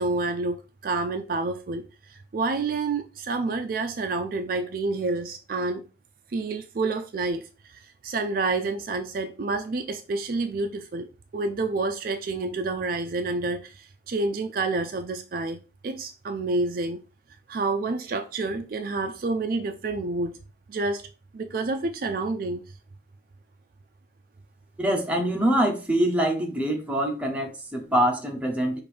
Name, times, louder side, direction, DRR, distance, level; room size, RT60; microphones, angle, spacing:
voice 1, 0.0-5.8 6.3-11.1 11.3-17.0 17.5-20.4 20.7-21.1 21.3-22.6, right 3 dB, 50° right, 0.3 m, -29 dB
voice 2, 24.8-28.8, right 1 dB, 5° right, 0.7 m, -24 dB
5.2 x 2.5 x 3.2 m
head